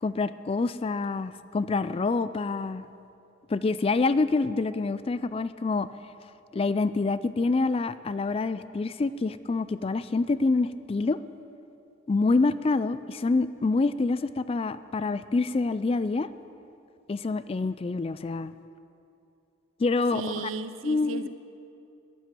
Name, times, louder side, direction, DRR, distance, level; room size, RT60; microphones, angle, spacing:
voice 1, 0.0-2.9 3.5-5.9 6.5-11.2 12.1-16.3 17.1-18.5 19.8-20.5 20.8-21.3, left 3 dB, 30° left, 0.3 m, -26 dB
voice 2, 20.1-21.3, right 4 dB, 85° right, 0.7 m, -35 dB
13.0 x 9.5 x 7.5 m
head